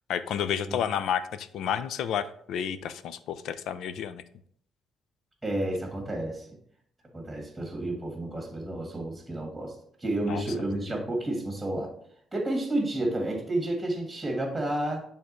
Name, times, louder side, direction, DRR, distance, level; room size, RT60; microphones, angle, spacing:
voice 1, 0.1-4.2 10.3-10.4, left 8 dB, 80° left, 13 dB, 0.4 m, -31 dB
voice 2, 5.4-6.4 7.1-9.7 10.0-11.9 12.3-15.0, right 1 dB, 10° right, 1 dB, 1.6 m, -30 dB
10.0 x 3.5 x 3.1 m, 0.65 s
cardioid pair, 110°, 0 cm